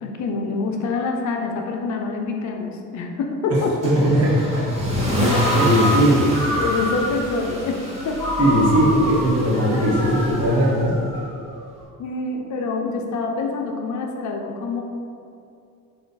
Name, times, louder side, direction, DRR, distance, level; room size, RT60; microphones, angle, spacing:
voice 1, 0.0-3.7 5.5-6.1 6.5-7.8 8.0-8.2 12.0-14.8, left 4 dB, 55° left, 2 dB, 0.6 m, -26 dB
voice 2, 3.5-4.6 5.1-6.2 8.4-10.9, equal, 45° right, -5 dB, 1.2 m, -19 dB
Car / Engine starting / Accelerating revving vroom, 3.8-10.9, equal, 20° right, 1.4 m, -27 dB
Ringtone, 5.3-7.3 8.2-11.5, equal, 10° left, 1.1 m, -27 dB
4.2 x 2.4 x 4.0 m, 2.5 s
cardioid pair, 110°, 34 cm